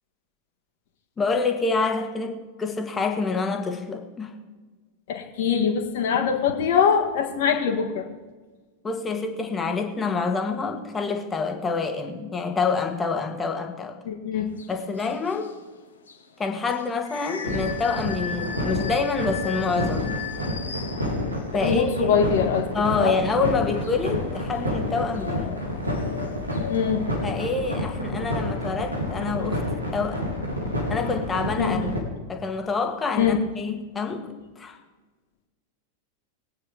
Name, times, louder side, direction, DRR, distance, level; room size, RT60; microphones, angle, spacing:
voice 1, 1.2-4.4 8.8-14.0 14.7-15.6 16.4-20.2 21.5-22.2 22.7-25.6 27.2-29.6 29.9-30.3 30.9-31.9 32.3-34.8, left 4 dB, 15° left, 4 dB, 1.6 m, -27 dB
voice 2, 5.1-8.1 14.0-14.5 21.6-22.7 23.0-23.1 26.7-27.0 31.6-31.8 33.1-33.4, left 7 dB, 50° left, 3 dB, 1.7 m, -23 dB
sound 1, 14.5-27.2, left 7 dB, 70° left, 1.4 m, -39 dB
sound 2, 17.4-32.0, left 1 dB, 85° right, 2.6 m, -29 dB
21.0 x 9.2 x 3.5 m, 1.3 s
figure-of-eight pair, 90°, 0 cm